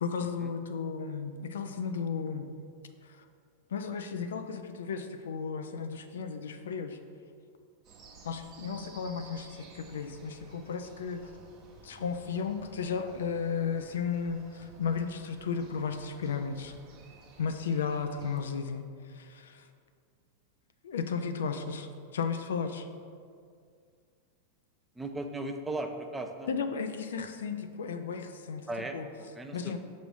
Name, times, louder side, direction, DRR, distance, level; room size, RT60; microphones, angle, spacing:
voice 1, 0.0-2.5 3.0-3.2 3.7-7.0 8.2-11.3 11.8-16.7 17.4-18.9 19.1-19.7 20.8-22.9 26.5-28.7 28.9-29.1 29.5-29.8, left 6 dB, 75° left, 8 dB, 0.4 m, -34 dB
sound 1, 7.8-18.4, right 4 dB, 40° right, 1.0 m, -54 dB
voice 2, 24.9-26.5 28.7-29.8, right 2 dB, 10° right, 5 dB, 0.5 m, -37 dB
5.9 x 3.1 x 5.3 m, 2.2 s
hypercardioid pair, 95°, 0 cm